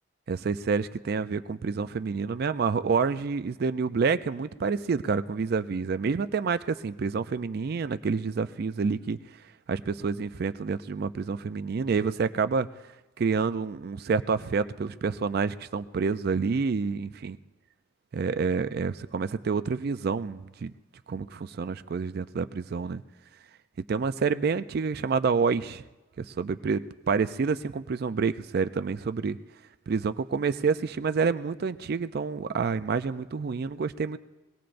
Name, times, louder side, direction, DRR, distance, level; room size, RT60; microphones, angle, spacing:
voice 1, 0.3-9.2 9.7-12.7 13.2-17.3 18.1-20.7 21.1-23.0 23.9-25.8 26.2-29.4 29.9-34.2, right 5 dB, 50° right, 12 dB, 0.4 m, -28 dB
23.5 x 18.0 x 2.6 m, 1.1 s
head